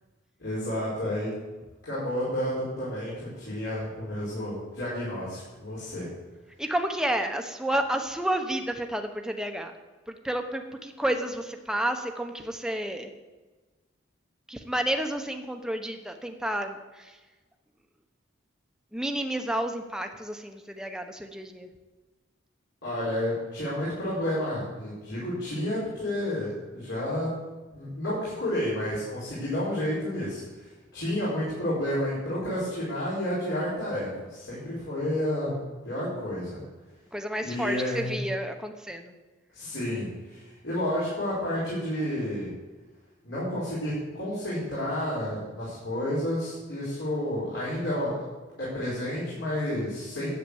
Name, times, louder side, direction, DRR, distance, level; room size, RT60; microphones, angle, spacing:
voice 1, 0.4-1.3 1.8-6.1 22.8-27.3 27.7-35.6 35.8-36.6 37.4-38.1 39.5-42.5 43.2-48.3 48.6-50.3, left 1 dB, 70° left, -9 dB, 4.8 m, -30 dB
voice 2, 6.6-9.8 10.1-13.1 14.5-17.2 18.9-21.7 37.1-39.1, right 1 dB, 5° right, 5 dB, 0.9 m, -30 dB
10.5 x 8.8 x 7.2 m, 1.2 s
head